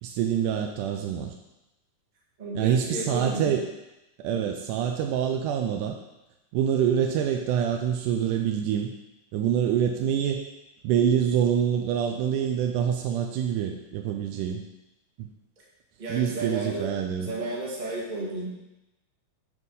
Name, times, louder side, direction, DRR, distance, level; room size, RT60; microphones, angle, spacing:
voice 1, 0.0-1.4 2.6-3.7 4.2-6.0 6.5-8.9 9.3-10.4 10.8-14.6 15.2-15.3 16.1-17.3, right 9 dB, 80° right, 3 dB, 2.0 m, -26 dB
voice 2, 2.4-3.6 4.3-4.4 14.3-14.4 16.0-16.9 17.2-18.5, right 2 dB, 25° right, -5 dB, 0.9 m, -33 dB
8.2 x 4.7 x 5.4 m, 0.97 s
omnidirectional pair, 4.0 m